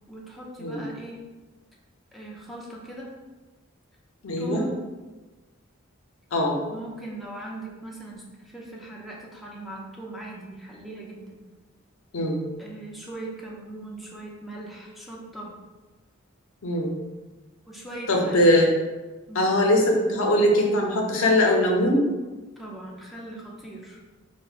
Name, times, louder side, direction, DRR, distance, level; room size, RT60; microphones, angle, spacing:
voice 1, 0.1-1.2 2.1-3.1 4.4-4.8 6.7-11.4 12.6-15.5 17.7-18.5 19.3-19.5 22.6-24.0, right 1 dB, ahead, -4 dB, 0.4 m, -39 dB
voice 2, 4.2-4.6 6.3-6.6 12.1-12.5 16.6-16.9 18.1-18.7 19.3-22.0, left 1 dB, 70° left, 0 dB, 0.6 m, -21 dB
4.9 x 2.1 x 2.4 m, 1.2 s
head